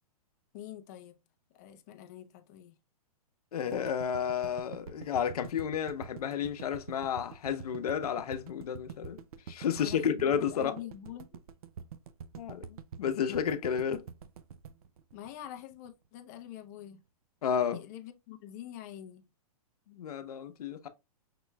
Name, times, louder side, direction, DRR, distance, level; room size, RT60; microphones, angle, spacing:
voice 1, 0.5-1.2 1.5-2.7 9.8-11.4 15.1-17.0 17.7-19.2, left 11 dB, 25° left, 0.5 m, -45 dB
voice 2, 3.5-9.2 9.5-10.7 12.4-14.0 17.4-17.8 19.9-20.9, left 8 dB, 70° left, 0.8 m, -32 dB
sound 1, 3.7-15.9, right 7 dB, 65° right, 0.5 m, -46 dB
5.6 x 3.0 x 2.2 m
hypercardioid pair, 160°, 20 cm